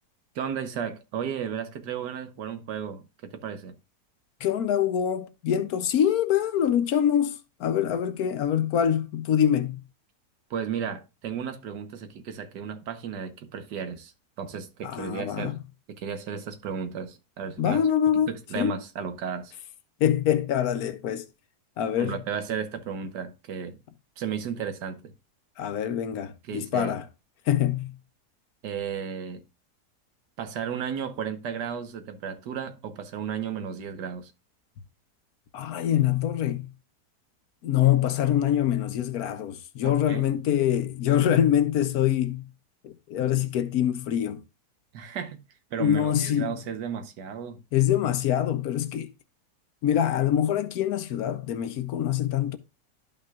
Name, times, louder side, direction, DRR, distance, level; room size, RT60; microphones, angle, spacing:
voice 1, 0.3-3.8 10.5-14.1 14.4-15.6 15.9-17.8 18.3-19.5 22.0-23.8 24.2-25.1 26.5-27.0 28.6-29.4 30.4-34.3 39.8-40.3 44.9-45.4 45.7-47.6, right 7 dB, 85° right, 1.5 m, -34 dB
voice 2, 4.4-9.8 14.8-15.6 17.6-18.8 20.0-21.3 21.8-22.2 25.6-27.1 27.5-28.0 35.5-36.7 37.6-42.5 42.8-44.4 45.8-46.5 47.7-49.1 49.8-52.6, left 10 dB, 70° left, 1.1 m, -25 dB
12.0 x 5.5 x 2.3 m
omnidirectional pair, 1.8 m